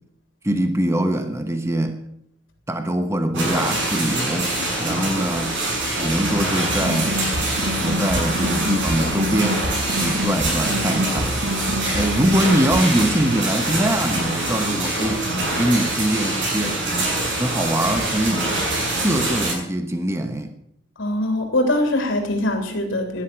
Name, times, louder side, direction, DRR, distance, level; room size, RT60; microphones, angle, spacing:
voice 1, 0.4-2.0 2.7-5.6 6.0-7.2 7.7-11.3 11.9-15.3 15.6-16.8 17.4-18.6 19.0-20.5, right 1 dB, 15° right, 7 dB, 1.1 m, -23 dB
sound 1, 3.3-19.5, right 1 dB, 70° right, 6.7 m, -24 dB
sound 2, 6.7-12.8, equal, 55° right, 1.2 m, -27 dB
voice 2, 21.0-23.2, left 1 dB, 80° left, 3 dB, 3.3 m, -22 dB
17.5 x 11.5 x 6.3 m, 0.74 s
head